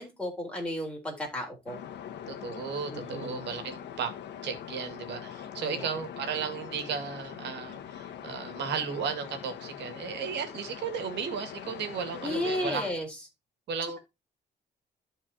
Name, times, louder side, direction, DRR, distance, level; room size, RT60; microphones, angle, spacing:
voice 1, 0.0-1.8 2.9-3.5 5.6-5.9 12.2-13.1, left 1 dB, 5° left, 3.9 m, -34 dB
sound 1, 1.7-12.9, left 9 dB, 85° left, 1.3 m, -42 dB
voice 2, 2.3-4.1 4.4-12.9 13.7-14.0, right 6 dB, 80° right, 2.1 m, -35 dB
14.0 x 4.6 x 2.8 m
cardioid pair, 120°, 18 cm